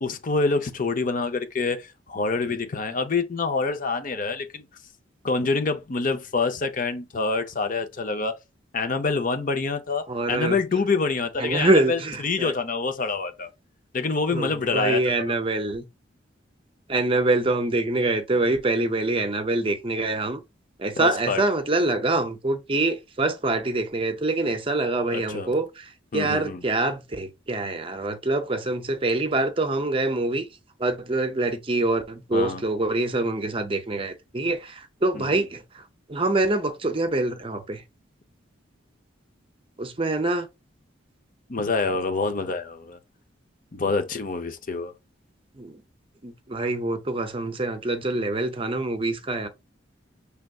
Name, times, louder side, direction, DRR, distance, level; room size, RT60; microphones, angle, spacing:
voice 1, 0.0-4.6 5.2-8.4 8.7-13.5 13.9-15.0 21.0-21.4 25.1-25.5 26.1-26.6 32.3-32.6 35.1-35.4 41.5-43.0 43.7-44.9, left 4 dB, 45° left, 0.6 m, -26 dB
voice 2, 10.1-10.6 11.4-12.5 14.3-15.8 16.9-20.4 20.8-30.5 30.8-35.8 36.1-37.8 39.8-40.5 45.6-45.8 46.2-49.5, right 2 dB, 30° right, 0.6 m, -25 dB
6.5 x 3.4 x 2.4 m
head